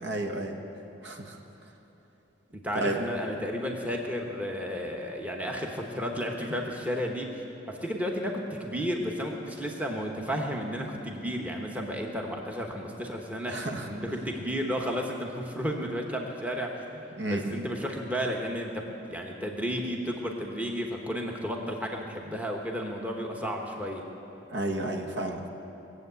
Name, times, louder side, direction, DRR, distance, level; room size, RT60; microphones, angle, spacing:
voice 1, 0.0-0.6 1.0-1.4 2.7-3.0 13.5-13.9 17.2-17.6 24.5-25.5, right 1 dB, 65° right, 3 dB, 1.3 m, -31 dB
voice 2, 2.5-7.3 7.7-13.6 13.9-24.0, equal, 10° right, 1 dB, 1.1 m, -33 dB
19.5 x 7.9 x 8.1 m, 2.9 s
head